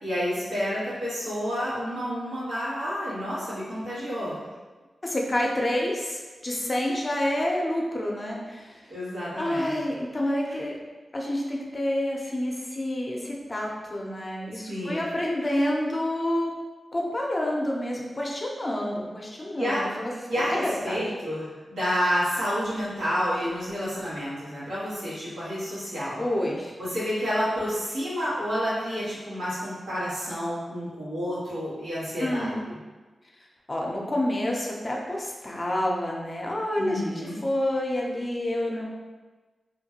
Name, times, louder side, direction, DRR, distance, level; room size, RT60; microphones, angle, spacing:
voice 1, 0.0-4.4 8.9-9.7 14.7-15.0 19.6-19.8 20.3-26.2 26.8-32.7 36.8-37.4, equal, 85° right, -11 dB, 1.3 m, -29 dB
voice 2, 5.0-8.8 9.4-10.7 11.1-16.5 16.9-20.1 20.5-21.0 26.2-26.7 32.2-32.6 33.7-38.9, left 1 dB, 40° left, -1 dB, 0.6 m, -28 dB
3.1 x 2.1 x 2.8 m, 1.3 s
cardioid pair, 40°, 0 cm